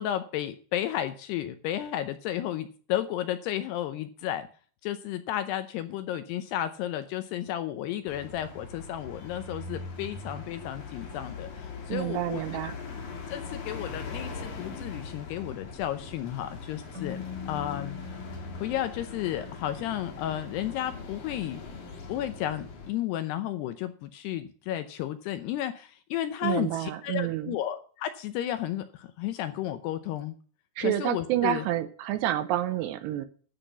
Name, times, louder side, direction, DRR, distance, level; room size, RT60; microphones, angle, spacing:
voice 1, 0.0-4.5 4.8-12.7 13.3-18.0 18.6-21.6 22.1-30.3 30.8-31.7, left 12 dB, 80° left, 10 dB, 2.5 m, -33 dB
sound 1, 8.1-22.9, left 4 dB, 55° left, 2.7 m, -41 dB
voice 2, 11.9-12.8 26.4-27.6 30.8-33.3, right 13 dB, 75° right, 11 dB, 2.7 m, -29 dB
Keyboard (musical), 16.9-19.7, left 8 dB, 55° right, 0.9 m, -42 dB
12.5 x 5.9 x 8.1 m, 0.42 s
omnidirectional pair, 5.3 m